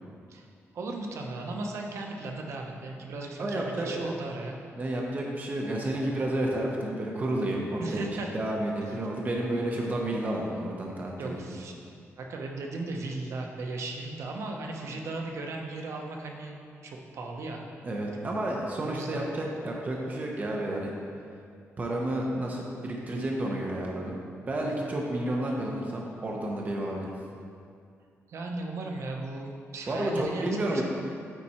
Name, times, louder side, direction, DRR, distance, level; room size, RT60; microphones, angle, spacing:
voice 1, 0.7-4.5 7.8-8.3 11.2-11.7 12.2-16.6 16.8-17.6 18.8-19.2 24.6-25.0 28.3-30.8, right 2 dB, 65° right, 1 dB, 0.9 m, -36 dB
voice 2, 3.4-4.0 4.7-8.1 8.3-11.4 17.8-20.9 21.8-24.2 24.5-27.1 29.9-30.8, right 1 dB, 30° right, -1 dB, 0.8 m, -31 dB
9.1 x 4.2 x 4.3 m, 2.3 s
wide cardioid pair, 130°, 5 cm